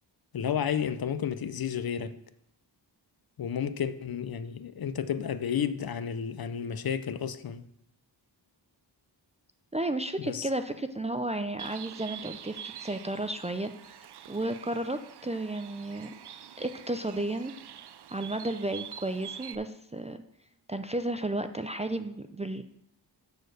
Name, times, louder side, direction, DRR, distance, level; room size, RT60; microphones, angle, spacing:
voice 1, 0.3-2.2 3.4-7.7 10.2-10.5, left 8 dB, 55° left, 0.6 m, -32 dB
voice 2, 9.7-14.0 14.3-16.1 16.6-17.5 18.1-20.2 20.7-22.6, right 1 dB, 15° right, 0.4 m, -33 dB
Bird, 11.6-19.5, right 9 dB, 65° right, 0.6 m, -45 dB
6.7 x 6.7 x 6.2 m
wide cardioid pair, 120°, 43 cm